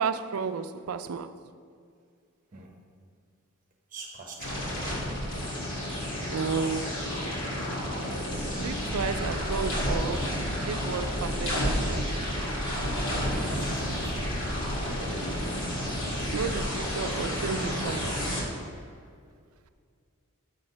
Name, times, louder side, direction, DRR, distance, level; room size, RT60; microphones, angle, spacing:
voice 1, 0.0-1.3 6.3-7.1 8.5-10.3 10.6-12.2 16.3-18.2, right 5 dB, 85° right, 0.4 m, -32 dB
voice 2, 3.9-4.8 13.1-14.4, right 3 dB, 40° right, 1.0 m, -44 dB
sound 1, 4.4-18.4, equal, 65° left, 2.1 m, -31 dB
sound 2, 12.9-18.3, equal, 85° left, 1.9 m, -43 dB
6.6 x 6.5 x 5.7 m
head